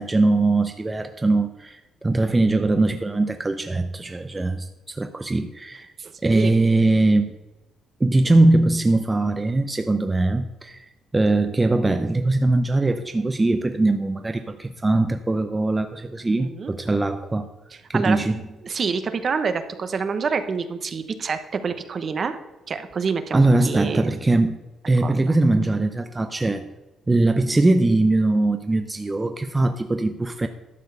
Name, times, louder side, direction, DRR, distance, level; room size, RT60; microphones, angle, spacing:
voice 1, 0.0-5.9 6.2-7.3 8.0-10.8 11.1-17.5 17.9-18.4 23.3-26.7 27.1-30.5, right 2 dB, 20° right, 7 dB, 0.6 m, -21 dB
voice 2, 6.0-6.5 16.4-16.7 17.9-18.2 18.6-22.4 22.7-24.1 25.0-25.4, right 5 dB, 45° right, 9 dB, 1.0 m, -27 dB
11.5 x 4.6 x 6.8 m, 1.1 s
cardioid pair, 90°, 0 cm